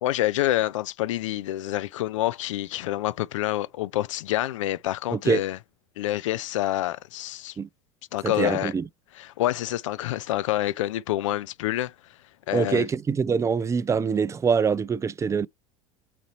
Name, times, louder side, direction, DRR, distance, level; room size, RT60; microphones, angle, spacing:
voice 1, 0.0-5.6 6.0-7.6 8.1-8.7 9.2-11.9 12.5-12.9, left 14 dB, 85° left, 0.4 m, -27 dB
voice 2, 5.1-5.4 7.6-7.7 8.2-8.8 12.5-15.5, right 6 dB, 20° right, 0.4 m, -24 dB
4.1 x 4.0 x 3.0 m
hypercardioid pair, 90°, 16 cm